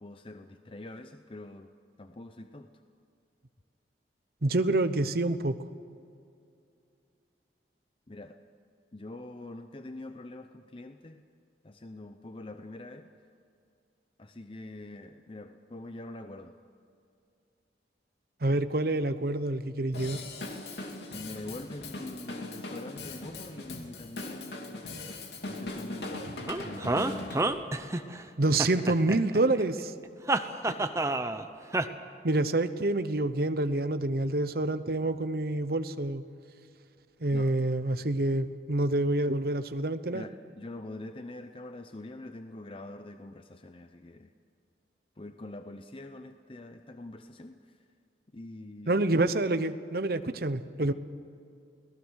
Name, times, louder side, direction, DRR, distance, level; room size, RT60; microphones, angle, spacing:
voice 1, 0.0-1.7 2.0-2.7 8.1-8.4 8.9-11.2 11.6-13.1 14.2-16.5 21.1-24.9 25.4-26.4 26.7-27.1 30.6-30.8 37.3-37.5 40.1-44.3 45.2-47.6 48.3-49.0, left 2 dB, 30° left, 7 dB, 0.7 m, -44 dB
voice 2, 4.4-5.6 18.4-20.2 28.4-29.9 32.2-36.2 37.2-40.2 48.9-50.9, right 2 dB, 60° right, 11 dB, 0.9 m, -27 dB
Drum kit / Drum, 19.9-27.4, left 2 dB, 70° left, 2.7 m, -40 dB
sound 1, 26.5-28.2 28.6-29.6 30.3-31.4 31.7-31.9, right 2 dB, 15° right, 0.8 m, -29 dB
29.0 x 18.5 x 6.5 m, 2.5 s
head